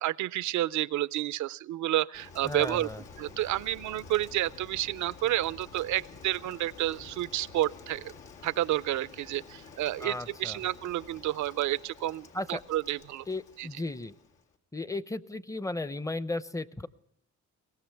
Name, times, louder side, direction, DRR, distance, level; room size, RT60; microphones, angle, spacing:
voice 1, 0.0-2.9 3.2-8.1 8.4-13.3 13.6-13.7, right 14 dB, 70° right, 19 dB, 0.5 m, -30 dB
Rain, 2.1-14.6, left 4 dB, 90° left, 2.1 m, -50 dB
voice 2, 2.4-3.0 10.0-10.6 12.3-12.6 13.3-14.1 14.7-16.9, left 2 dB, 10° left, 16 dB, 0.6 m, -35 dB
22.5 x 18.0 x 3.4 m, 0.78 s
cardioid pair, 90°, 30 cm